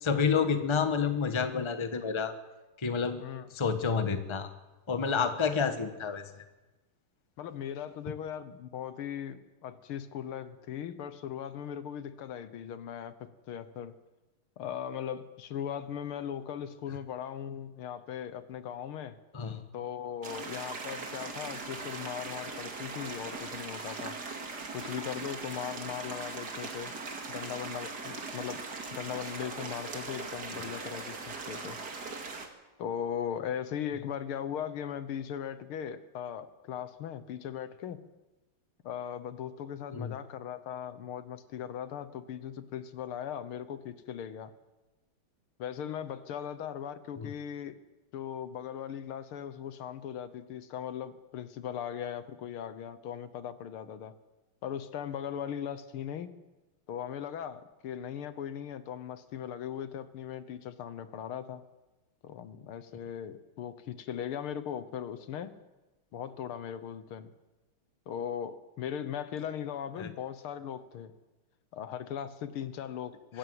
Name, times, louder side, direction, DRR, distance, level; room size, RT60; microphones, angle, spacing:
voice 1, 0.0-2.3 2.8-3.2 3.5-4.5 4.9-6.4 19.3-19.6 39.9-40.1 47.2-47.3 70.0-70.1 73.3-73.4, left 6 dB, 15° left, 9 dB, 1.1 m, -29 dB
voice 2, 7.4-13.9 14.6-19.2 19.7-24.2 24.7-26.9 27.3-28.6 28.9-31.8 32.8-38.0 38.8-44.5 45.6-47.8 48.1-54.1 54.6-56.3 56.9-61.6 62.2-65.5 66.1-67.3 68.1-71.1 71.7-73.4, left 9 dB, 75° left, 13 dB, 1.9 m, -38 dB
sound 1, 20.2-32.5, right 3 dB, 50° right, 2.6 m, -40 dB
24.0 x 14.0 x 7.9 m, 1.1 s
omnidirectional pair, 2.4 m